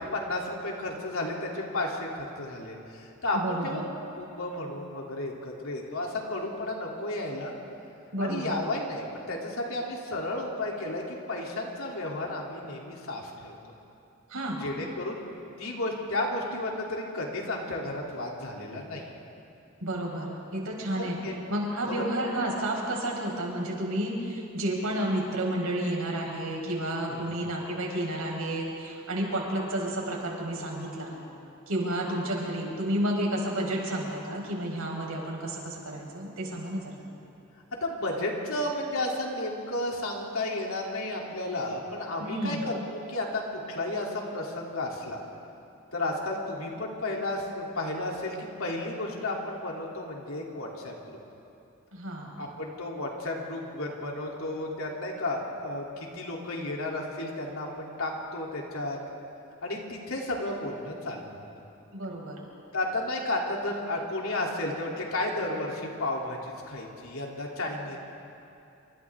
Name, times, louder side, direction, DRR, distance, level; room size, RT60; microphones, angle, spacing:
voice 1, 0.0-3.8 4.2-7.6 8.2-13.5 14.6-15.2 15.6-19.2 21.0-21.4 21.9-22.0 27.1-27.3 37.8-45.2 45.9-50.9 52.4-59.0 59.6-61.3 62.7-68.0, left 2 dB, 75° left, -2 dB, 3.3 m, -33 dB
voice 2, 3.3-3.8 8.1-8.5 14.3-14.6 19.8-21.2 21.5-31.2 31.7-37.0 42.2-42.6 51.9-52.4 61.9-62.4, right 1 dB, 90° right, -1 dB, 4.8 m, -31 dB
28.0 x 25.5 x 3.7 m, 2.7 s
head